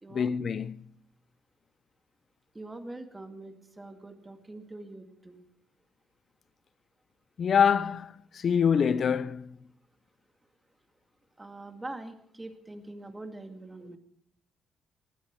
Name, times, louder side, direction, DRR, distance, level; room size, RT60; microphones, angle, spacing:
voice 1, 0.1-0.8 7.4-9.6, left 7 dB, 55° left, 0.7 m, -25 dB
voice 2, 2.5-5.4 11.4-14.0, right 2 dB, 15° right, 2.2 m, -43 dB
19.5 x 13.0 x 4.8 m
cardioid pair, 90°, 0 cm